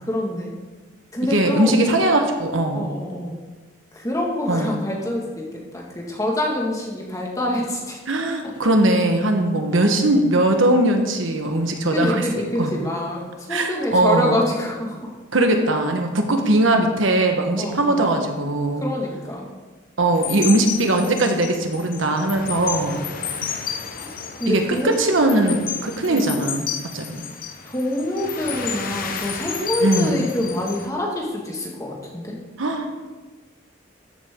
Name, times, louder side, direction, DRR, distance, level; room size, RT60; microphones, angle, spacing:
voice 1, 0.1-0.5 1.1-1.8 2.7-3.4 4.0-5.5 5.7-8.0 11.9-15.1 17.6-18.1 18.8-19.5 24.0-24.1 24.4-25.4 26.1-26.2 27.7-32.3, left 1 dB, 15° left, -2 dB, 1.8 m, -26 dB
voice 2, 1.3-2.9 4.5-4.8 8.1-12.7 13.5-14.4 15.3-18.8 20.0-23.0 24.5-26.7 26.9-27.2 29.8-30.2 32.6-32.9, right 1 dB, 75° right, 4 dB, 1.3 m, -20 dB
sound 1, 20.1-30.9, left 7 dB, 45° left, 0.9 m, -32 dB
13.5 x 8.3 x 3.7 m, 1.3 s
head